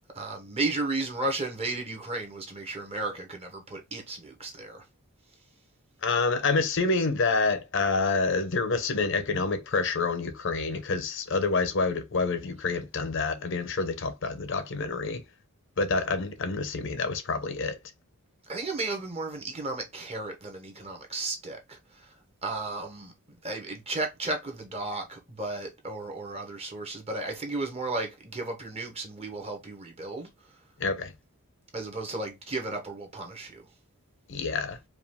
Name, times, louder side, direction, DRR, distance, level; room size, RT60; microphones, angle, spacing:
voice 1, 0.1-4.8 18.5-22.1 22.4-23.1 23.4-30.3 31.7-33.6, right 2 dB, 25° right, 1.1 m, -34 dB
voice 2, 6.0-15.2 15.8-17.8 30.8-31.1 34.3-34.8, left 4 dB, 55° left, 0.7 m, -27 dB
4.7 x 2.5 x 3.5 m
head